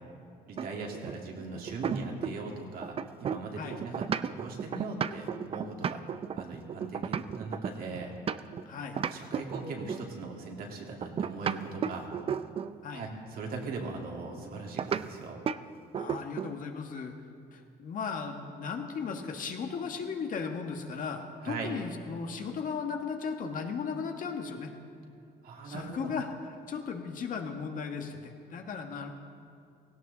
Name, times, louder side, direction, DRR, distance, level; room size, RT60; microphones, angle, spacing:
voice 1, 0.5-6.0 6.3-8.1 9.1-12.1 12.9-15.4 21.4-21.7 25.4-26.1, right 3 dB, 60° right, 0 dB, 2.4 m, -39 dB
sound 1, 0.6-2.5 2.8-8.6 9.0-10.1 11.0-12.8 14.8-15.0 15.5-15.6 15.9-16.6, right 7 dB, 35° right, 0.4 m, -34 dB
voice 2, 8.6-9.0 12.8-13.1 16.0-17.1 17.5-24.7 25.6-26.3 26.7-29.1, left 5 dB, 50° left, 4 dB, 1.5 m, -36 dB
17.5 x 16.0 x 4.0 m, 2.3 s
cardioid pair, 110°, 17 cm